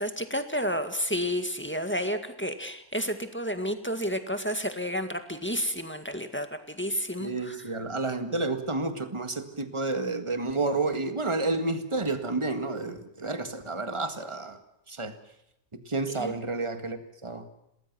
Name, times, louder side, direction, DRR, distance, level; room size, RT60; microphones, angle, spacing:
voice 1, 0.0-6.5 6.8-7.6 16.1-16.3, equal, 10° left, 7 dB, 1.8 m, -31 dB
voice 2, 7.2-14.6 14.9-15.1 15.7-17.5, right 3 dB, 20° right, 8 dB, 1.8 m, -30 dB
28.0 x 19.5 x 6.1 m, 0.79 s
omnidirectional pair, 1.6 m